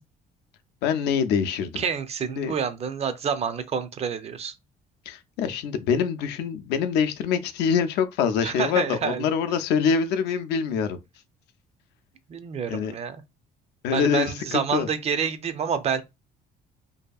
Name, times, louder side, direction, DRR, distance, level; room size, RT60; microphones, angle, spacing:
voice 1, 0.8-1.8 2.2-2.5 5.1-11.0 12.7-13.0 13.8-14.9, left 7 dB, 85° left, 0.4 m, -25 dB
voice 2, 1.8-4.5 8.4-9.3 12.3-13.2 13.9-16.0, right 7 dB, 40° right, 0.4 m, -28 dB
2.7 x 2.5 x 2.3 m
cardioid pair, 110°, 17 cm